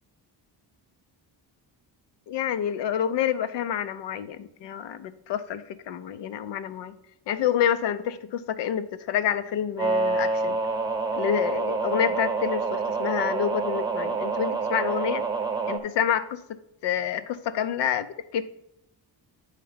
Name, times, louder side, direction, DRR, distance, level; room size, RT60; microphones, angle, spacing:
voice 1, 2.3-6.9 7.3-10.6 11.1-15.2 15.7-18.1 18.3-18.4, left 9 dB, 70° left, 12 dB, 0.7 m, -28 dB
sound 1, 9.8-15.8, right 4 dB, 10° right, 1.0 m, -27 dB
9.1 x 3.3 x 5.6 m, 0.84 s
cardioid pair, 85°, 43 cm